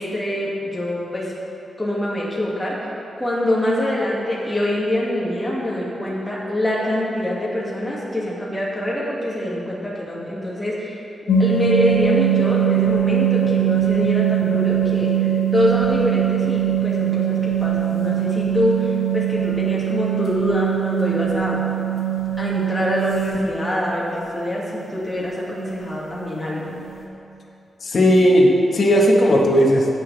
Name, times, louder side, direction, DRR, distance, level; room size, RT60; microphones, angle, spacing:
voice 1, 0.0-1.3 1.8-11.0 11.4-21.6 22.4-26.8, left 1 dB, 10° left, -6 dB, 2.2 m, -25 dB
sound 1, 11.3-23.4 25.2-25.4 25.7-25.9 26.2-26.4 26.7-27.0, right 9 dB, 70° left, 1.6 m, -21 dB
voice 2, 27.8-29.9, equal, 50° left, -2 dB, 1.5 m, -15 dB
17.0 x 6.1 x 3.4 m, 2.7 s
wide cardioid pair, 120°, 0 cm